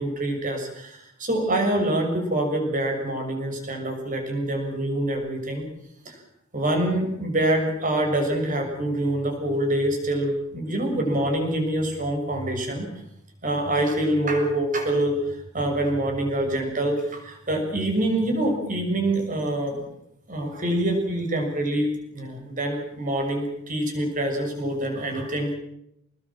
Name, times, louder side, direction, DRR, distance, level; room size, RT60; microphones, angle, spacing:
voice 1, 0.0-5.7 6.0-6.2 6.5-12.9 13.4-19.8 20.3-25.5, right 1 dB, 40° right, 3 dB, 6.5 m, -25 dB
26.5 x 20.0 x 7.5 m, 0.79 s
head